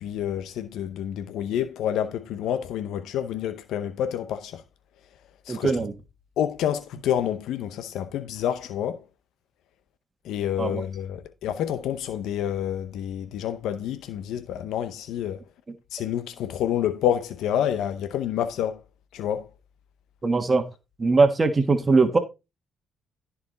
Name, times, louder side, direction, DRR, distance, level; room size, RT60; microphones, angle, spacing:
voice 1, 0.0-4.6 5.5-5.7 6.4-9.0 10.3-15.4 15.9-18.8 19.1-19.5, left 10 dB, 85° left, 0.7 m, -28 dB
voice 2, 5.5-5.9 10.6-10.8 15.7-15.8 20.2-20.7 21.0-22.2, right 3 dB, 30° right, 1.5 m, -21 dB
14.0 x 4.8 x 3.9 m
cardioid pair, 90°, 0 cm